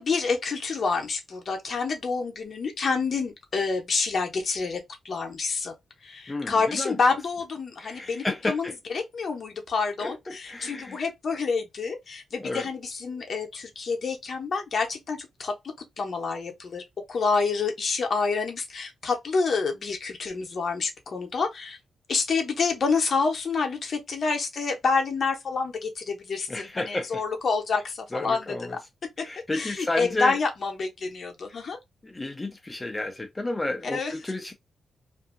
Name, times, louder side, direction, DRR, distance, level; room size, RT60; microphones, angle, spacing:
voice 1, 0.0-4.8 5.0-5.7 6.0-15.5 16.0-16.8 17.1-21.8 22.1-28.8 29.2-29.3 29.5-31.8 33.9-34.1, left 4 dB, 45° left, 0.7 m, -28 dB
voice 2, 6.3-7.0 7.8-8.7 10.0-11.0 12.4-12.7 26.5-27.2 28.1-28.8 29.2-30.4 32.0-34.5, left 2 dB, 15° left, 0.4 m, -31 dB
2.6 x 2.6 x 2.4 m
wide cardioid pair, 165°, 0 cm